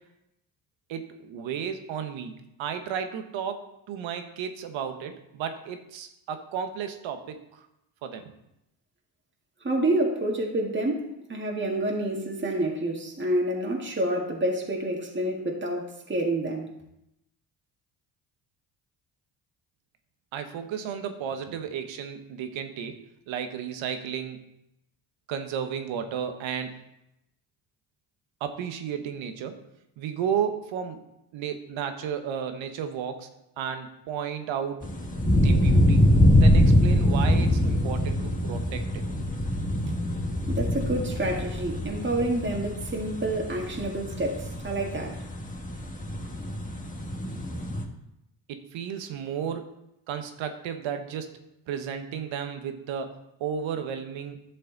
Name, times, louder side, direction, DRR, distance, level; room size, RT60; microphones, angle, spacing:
voice 1, 0.9-7.7 8.0-8.3 20.3-23.0 23.3-24.4 25.3-26.7 28.4-29.6 30.0-31.0 31.3-33.3 33.6-34.9 35.4-36.0 36.4-39.3 48.5-49.7 50.1-51.4 51.7-54.4, right 8 dB, 75° right, 8 dB, 1.2 m, -33 dB
voice 2, 9.6-16.7 39.9-40.0 40.5-45.2, right 1 dB, 25° right, 0 dB, 2.0 m, -28 dB
sound 1, 34.8-47.8, left 1 dB, 15° left, 1.8 m, -24 dB
11.5 x 6.7 x 4.0 m, 0.85 s
supercardioid pair, 65°, 46 cm